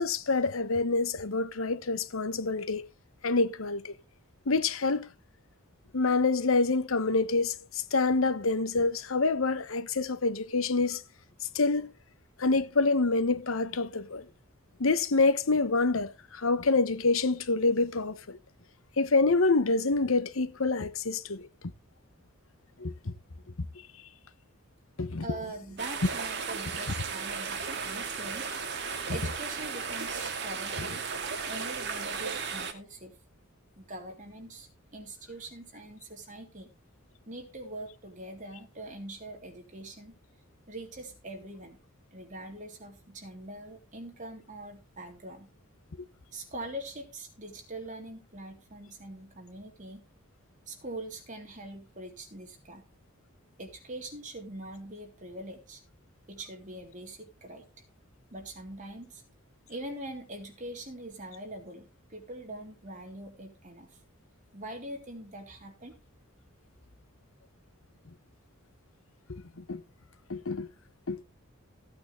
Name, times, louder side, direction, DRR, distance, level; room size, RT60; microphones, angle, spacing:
voice 1, 0.0-2.8 3.2-3.9 4.5-5.1 5.9-11.0 11.5-11.9 12.4-14.3 14.8-18.4 19.0-21.5 22.8-23.1 25.0-25.3 69.3-69.8 70.3-70.7 71.1-71.2, left 3 dB, 85° left, 1.0 m, -27 dB
voice 2, 25.2-28.5 29.1-31.0 31.5-33.2 33.8-36.7 37.3-40.2 40.7-41.8 42.1-45.5 46.3-50.0 50.7-52.9 53.6-55.8 56.3-57.7 58.3-59.2 59.7-64.0 64.5-65.9, right 1 dB, 40° right, 3.5 m, -43 dB
sound 1, 25.8-32.7, right 5 dB, 55° right, 2.2 m, -35 dB
16.0 x 8.8 x 3.3 m
head